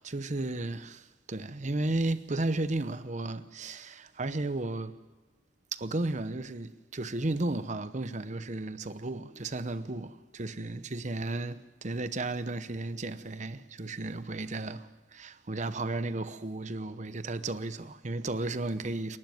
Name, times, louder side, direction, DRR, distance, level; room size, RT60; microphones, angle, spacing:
voice 1, 0.0-5.0 5.7-19.2, right 2 dB, 40° right, 0.9 m, -34 dB
27.5 x 12.0 x 9.3 m
head